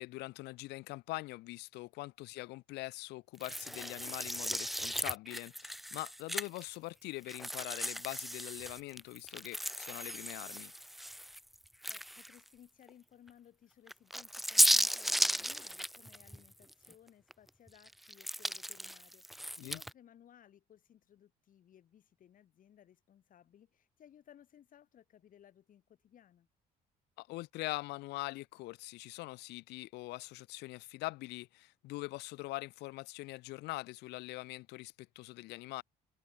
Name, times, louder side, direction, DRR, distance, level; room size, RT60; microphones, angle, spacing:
voice 1, 0.0-10.7 19.6-19.8 27.2-35.8, left 20 dB, 85° left, 0.7 m, -43 dB
sound 1, 3.4-6.8 7.3-12.5 12.9-13.0 13.9-16.9 17.3-19.9, equal, ahead, 0.7 m, -35 dB
voice 2, 11.9-26.5, left 10 dB, 55° left, 3.9 m, -61 dB
cardioid pair, 110°, 17 cm